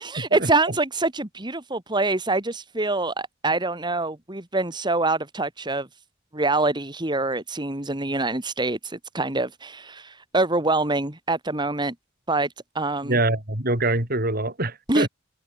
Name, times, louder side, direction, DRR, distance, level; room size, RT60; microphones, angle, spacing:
voice 1, 0.0-5.9 6.3-11.9 12.3-12.5 12.7-13.1 14.9-15.1, right 2 dB, 25° right, 2.3 m, -25 dB
voice 2, 13.0-15.1, right 2 dB, 50° right, 6.3 m, -24 dB
open air
head